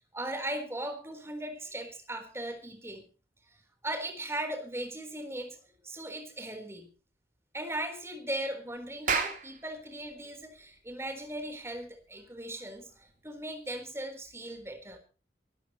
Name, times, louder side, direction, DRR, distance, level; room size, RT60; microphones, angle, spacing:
voice 1, 0.1-3.0 3.5-3.6 3.8-5.6 5.8-6.9 7.5-15.0, right 1 dB, 15° right, 3.9 m, -38 dB
Clapping, 8.8-13.7, right 5 dB, 45° right, 3.4 m, -37 dB
24.0 x 14.0 x 3.0 m
head